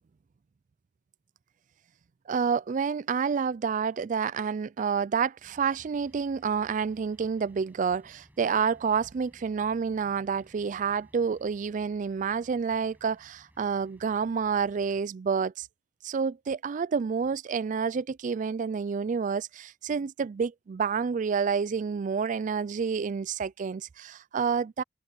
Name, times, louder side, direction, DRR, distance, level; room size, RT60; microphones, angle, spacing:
voice 1, 2.3-15.7 16.0-24.8, right 6 dB, 45° right, 0.3 m, -29 dB
sound 1, 5.4-15.0, equal, 10° right, 6.7 m, -60 dB
head